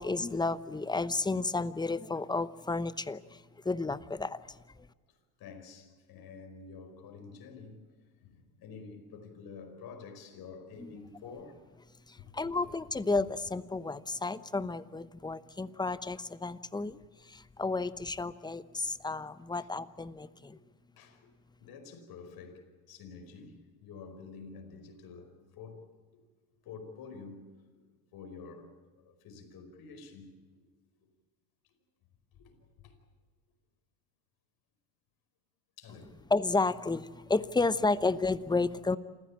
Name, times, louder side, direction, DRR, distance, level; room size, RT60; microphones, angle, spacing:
voice 1, 0.0-4.6 12.1-17.0 17.3-20.6 36.3-39.0, left 3 dB, 10° left, 0.8 m, -32 dB
voice 2, 5.1-7.9 8.1-11.8 12.2-12.5 19.5-19.7 20.5-20.6 20.9-21.3 21.6-25.9 26.6-27.5 27.9-30.6 31.6-31.7 32.3-33.0 35.8-36.2 37.6-37.7, left 5 dB, 55° left, 5.2 m, -49 dB
27.5 x 15.5 x 8.7 m
supercardioid pair, 90°, 44 cm